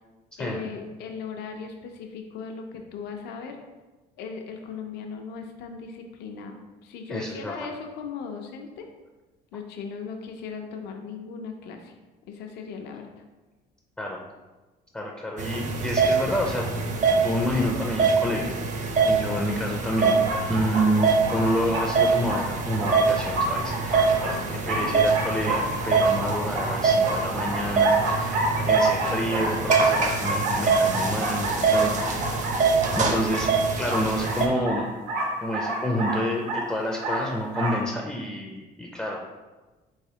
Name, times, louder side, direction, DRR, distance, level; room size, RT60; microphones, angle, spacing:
voice 1, 0.4-3.6 4.2-8.9 9.5-11.9 12.3-13.0 24.2-25.0, left 5 dB, 75° left, 3 dB, 0.5 m, -38 dB
voice 2, 7.1-7.6 14.0-14.2 14.9-16.8 17.2-18.6 19.1-20.2 20.5-24.4 24.7-32.5 33.0-33.5 33.8-34.9 35.4-39.2, equal, 5° left, -1 dB, 0.4 m, -29 dB
sound 1, 15.4-34.5, right 4 dB, 45° right, 0.5 m, -24 dB
sound 2, 20.0-37.8, right 1 dB, 80° right, 0.7 m, -30 dB
4.0 x 3.2 x 2.7 m, 1.2 s
cardioid pair, 110°, 17 cm